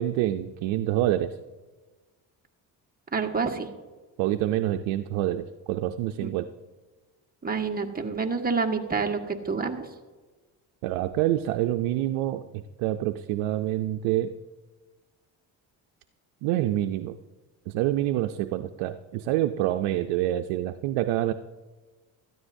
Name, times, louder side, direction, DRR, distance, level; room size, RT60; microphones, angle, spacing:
voice 1, 0.0-1.3 4.2-6.5 10.8-12.4 12.8-14.3 16.4-17.2 17.7-21.3, right 13 dB, 90° right, 7 dB, 0.6 m, -26 dB
voice 2, 3.1-3.7 6.2-6.3 7.4-9.9, right 4 dB, 20° right, 2 dB, 1.4 m, -28 dB
17.5 x 13.5 x 2.6 m, 1.2 s
supercardioid pair, 75°, 46 cm